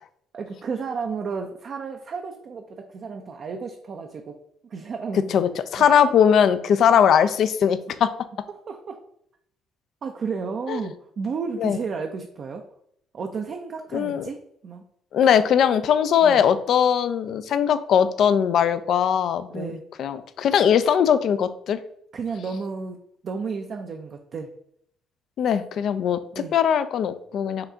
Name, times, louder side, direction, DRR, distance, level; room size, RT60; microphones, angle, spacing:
voice 1, 0.3-4.4 4.7-5.3 5.8-6.1 8.7-9.0 10.0-12.6 13.1-14.4 14.6-14.8 16.2-16.4 19.5-19.8 22.1-23.0 23.2-24.5 26.3-26.6, right 5 dB, 55° right, 3 dB, 0.5 m, -32 dB
voice 2, 5.1-8.1 10.7-10.8 11.6-11.8 13.9-14.3 15.1-21.8 25.4-27.7, left 8 dB, 65° left, 13 dB, 0.4 m, -20 dB
5.7 x 2.3 x 3.8 m, 0.70 s
supercardioid pair, 65°, 0 cm